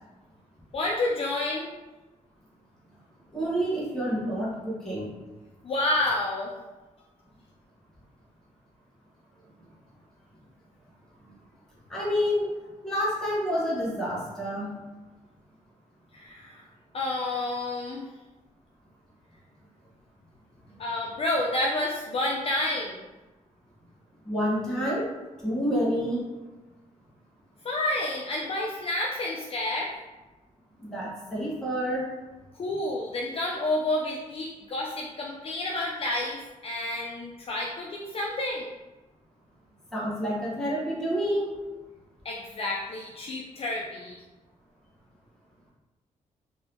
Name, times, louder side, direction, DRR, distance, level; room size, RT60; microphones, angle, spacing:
voice 1, 0.7-1.7 5.6-6.5 16.1-16.6 16.9-18.1 20.8-23.0 27.6-30.0 32.5-38.7 42.2-44.2, left 1 dB, 45° left, -2 dB, 0.4 m, -29 dB
voice 2, 3.3-5.1 11.9-12.6 12.8-14.8 24.2-25.1 25.4-26.3 30.8-32.1 39.9-41.6, equal, 5° left, -6 dB, 1.0 m, -28 dB
2.7 x 2.7 x 3.3 m, 1.1 s
cardioid pair, 85°, 13 cm